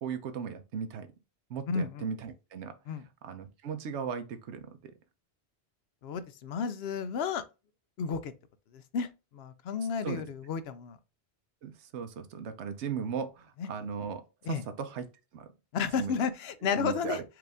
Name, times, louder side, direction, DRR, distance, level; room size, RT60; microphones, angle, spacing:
voice 1, 0.0-1.1 1.5-2.7 3.2-4.9 10.0-10.2 11.6-14.2 14.5-15.5 15.9-16.1 16.6-17.2, right 6 dB, 90° right, 1.0 m, -37 dB
voice 2, 1.7-2.1 2.9-3.0 6.0-7.4 8.0-8.3 8.7-11.0 13.6-13.7 14.4-14.6 15.7-17.2, left 6 dB, 70° left, 0.8 m, -32 dB
4.7 x 2.5 x 3.4 m
omnidirectional pair, 1.1 m